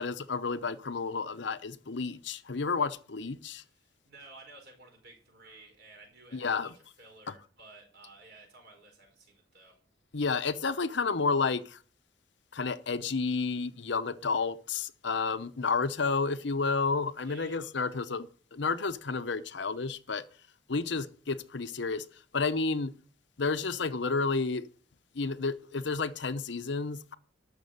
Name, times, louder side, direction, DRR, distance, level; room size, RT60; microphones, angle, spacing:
voice 1, 0.0-3.6 6.3-6.7 10.1-11.8 12.5-20.2 20.7-22.1 22.3-22.9 23.4-24.7 25.1-27.1, left 4 dB, 60° left, 0.8 m, -31 dB
voice 2, 3.6-9.8 17.2-17.6, right 2 dB, 55° right, 4.7 m, -54 dB
12.5 x 6.8 x 6.6 m
head